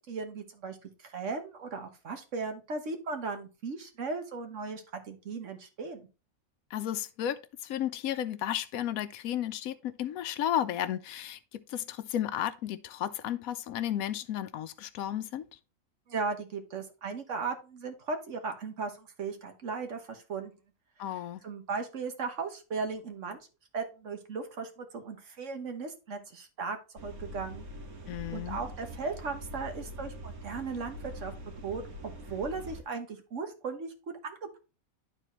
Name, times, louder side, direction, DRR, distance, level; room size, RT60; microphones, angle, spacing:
voice 1, 0.1-6.1 16.1-20.5 21.4-23.4 23.7-26.8 27.0-27.7 28.3-31.3 31.6-34.6, right 4 dB, 60° right, 1.4 m, -37 dB
voice 2, 6.7-15.4 21.0-21.4 28.1-28.6, left 11 dB, 75° left, 1.0 m, -33 dB
sound 1, 27.0-32.8, equal, 85° right, 2.1 m, -43 dB
11.5 x 4.1 x 3.0 m
omnidirectional pair, 1.5 m